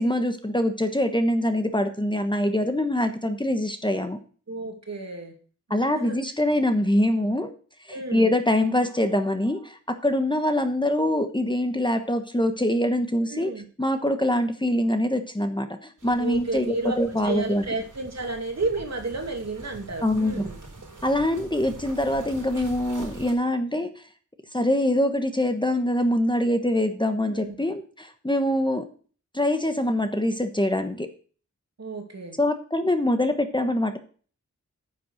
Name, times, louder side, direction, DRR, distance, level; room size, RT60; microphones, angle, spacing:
voice 1, 0.0-4.2 5.7-7.5 7.9-13.5 13.8-17.6 20.0-20.5 21.0-23.9 24.5-28.8 29.3-31.1 32.4-34.0, left 1 dB, 15° left, 7 dB, 1.1 m, -24 dB
voice 2, 4.5-5.4 5.7-6.2 7.9-8.3 13.3-13.6 16.2-20.6 27.3-27.6 31.8-32.4, right 2 dB, 60° right, 3 dB, 2.4 m, -32 dB
sound 1, 16.0-23.3, right 3 dB, 80° right, 4.6 m, -44 dB
9.6 x 6.9 x 6.3 m, 0.41 s
wide cardioid pair, 85°, 31 cm